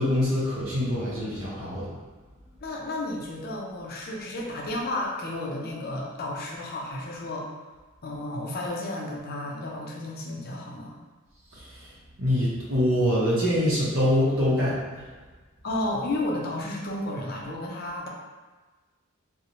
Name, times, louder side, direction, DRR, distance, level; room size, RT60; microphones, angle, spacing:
voice 1, 0.0-1.9 11.5-11.9 12.2-15.1, left 1 dB, 75° right, -7 dB, 0.6 m, -25 dB
voice 2, 2.6-7.6 8.0-11.0 15.6-18.1, left 1 dB, 45° left, -1 dB, 0.4 m, -32 dB
2.5 x 2.1 x 2.9 m, 1.3 s
head